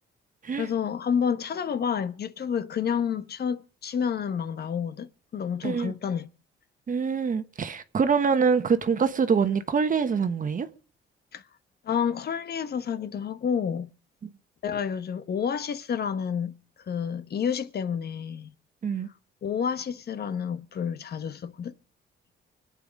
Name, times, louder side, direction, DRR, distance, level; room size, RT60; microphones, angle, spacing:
voice 1, 0.6-6.3 11.3-11.4 11.8-13.9 14.6-16.5 16.9-18.5 19.4-21.7, left 7 dB, 55° left, 1.1 m, -29 dB
voice 2, 5.6-5.9 6.9-10.7 18.8-19.1, right 6 dB, 40° right, 1.2 m, -25 dB
24.0 x 9.1 x 5.3 m
cardioid pair, 90°, 20 cm